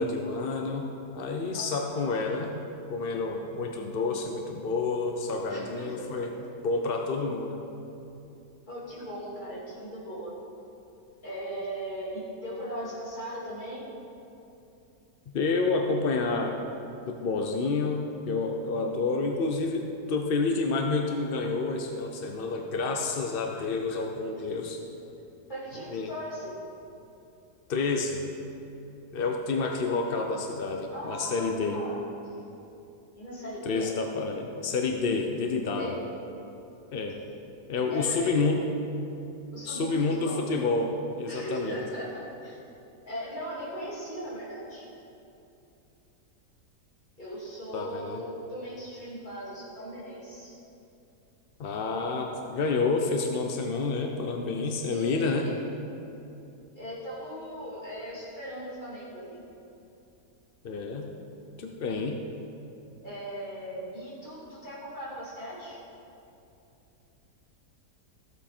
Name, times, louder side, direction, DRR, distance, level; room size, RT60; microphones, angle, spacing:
voice 1, 0.0-2.5 2.9-6.3 6.6-7.6 15.3-16.6 17.1-24.8 25.9-26.1 27.7-28.2 29.1-31.8 33.7-35.9 36.9-37.2 37.7-38.7 39.7-41.8 47.7-48.2 51.6-55.5 60.6-61.1 61.6-62.2, left 3 dB, 60° left, 2 dB, 0.6 m, -29 dB
voice 2, 1.5-2.0 5.5-6.3 8.7-10.3 11.2-13.8 24.8-24.9 25.5-26.5 30.9-32.4 33.1-33.9 35.8-36.0 37.9-38.5 39.5-40.4 41.2-42.6 43.0-44.9 47.2-50.6 54.7-55.6 56.8-59.4 63.0-65.8, equal, 25° left, -8 dB, 3.0 m, -38 dB
14.5 x 7.9 x 4.4 m, 2.8 s
omnidirectional pair, 1.8 m